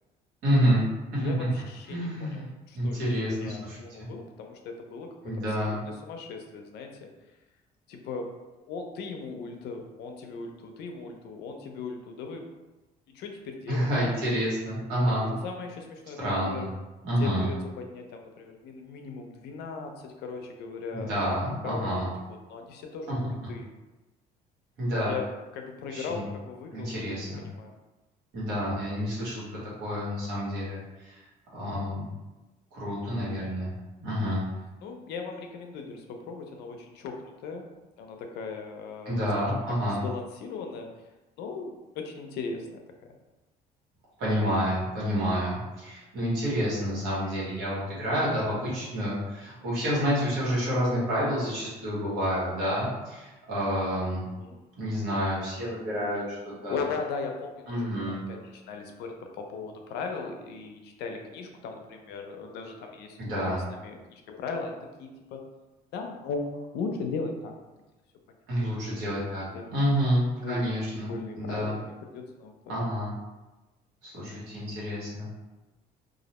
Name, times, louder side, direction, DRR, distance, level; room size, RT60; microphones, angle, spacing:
voice 1, 0.4-0.9 1.1-1.3 1.9-2.5 2.7-4.1 5.2-5.8 13.7-15.3 16.2-16.7 17.0-17.5 20.9-22.1 23.1-23.2 24.8-25.1 25.9-26.2 26.7-27.4 28.3-30.8 31.0-31.2 31.5-32.1 32.7-33.7 34.0-34.4 39.0-40.0 44.2-54.2 54.8-56.4 56.6-56.8 57.7-58.2 63.2-63.7 68.5-71.8 72.7-73.1 74.0-75.3, equal, 85° right, -7 dB, 1.2 m, -29 dB
voice 2, 1.2-7.1 7.9-8.3 8.7-12.5 13.1-14.1 15.3-16.7 17.2-21.3 21.6-23.7 25.0-27.7 34.8-37.7 38.0-40.9 41.4-42.8 53.9-54.6 56.7-65.5 65.9-67.6 69.0-69.2 69.5-69.7 70.4-70.6 71.1-72.7, left 4 dB, 80° left, 4 dB, 0.4 m, -38 dB
2.4 x 2.0 x 2.8 m, 1.1 s
cardioid pair, 110°, 17 cm